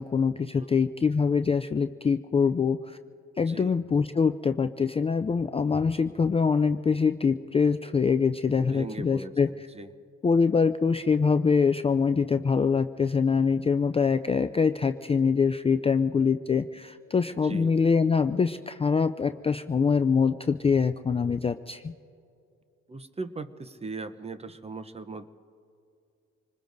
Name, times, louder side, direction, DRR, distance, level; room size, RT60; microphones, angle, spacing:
voice 1, 0.0-3.0 3.4-9.7 10.2-21.9, left 5 dB, 20° left, 9 dB, 0.4 m, -24 dB
voice 2, 8.6-9.9 17.4-17.7 22.9-25.3, right 3 dB, 20° right, 12 dB, 0.7 m, -39 dB
26.5 x 20.5 x 2.6 m, 2.5 s
cardioid pair, 90°, 30 cm